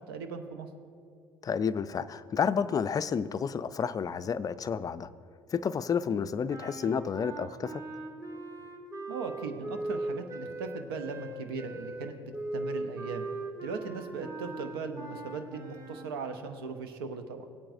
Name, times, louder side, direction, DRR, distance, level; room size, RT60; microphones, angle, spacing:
voice 1, 0.1-0.7 9.1-12.2 12.5-13.3 13.6-17.5, right 4 dB, 80° right, 7 dB, 0.8 m, -38 dB
voice 2, 1.4-5.1 5.5-7.8, left 6 dB, 30° left, 14 dB, 0.4 m, -30 dB
sound 1, 6.5-16.1, right 2 dB, 25° right, 1.5 m, -39 dB
17.5 x 8.6 x 2.6 m, 2.4 s
hypercardioid pair, 60°, 12 cm